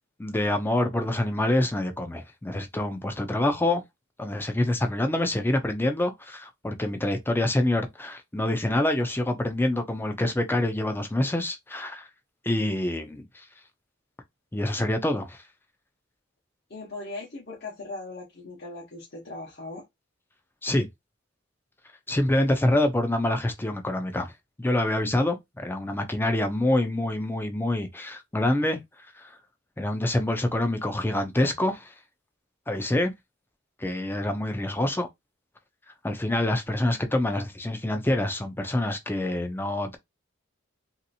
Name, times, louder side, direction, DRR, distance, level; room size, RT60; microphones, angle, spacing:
voice 1, 0.2-3.8 4.2-12.1 12.4-13.4 14.5-15.4 20.6-20.9 22.1-24.3 24.6-28.8 29.2-29.3 29.8-31.9 32.7-33.1 33.8-35.1 36.0-40.0, left 1 dB, 10° left, 0.5 m, -26 dB
voice 2, 16.7-19.8, left 2 dB, 50° left, 1.0 m, -39 dB
3.0 x 2.8 x 2.7 m
head